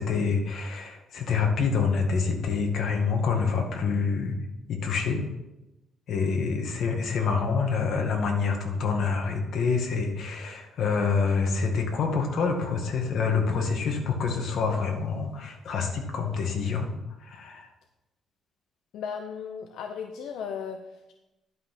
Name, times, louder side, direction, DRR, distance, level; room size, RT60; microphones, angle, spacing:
voice 1, 0.0-4.3 4.7-5.2 6.1-16.9 17.2-17.7, left 5 dB, 60° left, 2 dB, 1.9 m, -27 dB
voice 2, 18.9-21.1, left 6 dB, 80° left, 5 dB, 0.7 m, -36 dB
11.0 x 5.6 x 5.8 m, 0.99 s
cardioid pair, 135°, 0 cm